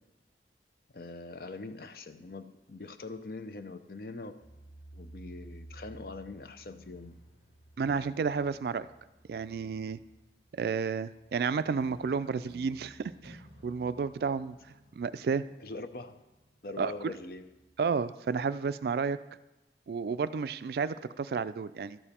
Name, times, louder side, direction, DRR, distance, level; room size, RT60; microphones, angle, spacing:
voice 1, 0.9-4.3 4.9-7.1 9.6-9.7 15.6-16.2 16.6-17.5, left 3 dB, 55° left, 10 dB, 0.6 m, -43 dB
sound 1, 4.4-18.0, right 1 dB, 80° left, 2.5 m, -55 dB
voice 2, 7.8-8.9 9.3-10.0 10.5-14.6 15.0-15.4 16.8-17.1 17.8-19.2 19.9-22.0, right 5 dB, 60° right, 15 dB, 0.3 m, -31 dB
12.5 x 7.0 x 4.3 m, 1.0 s
head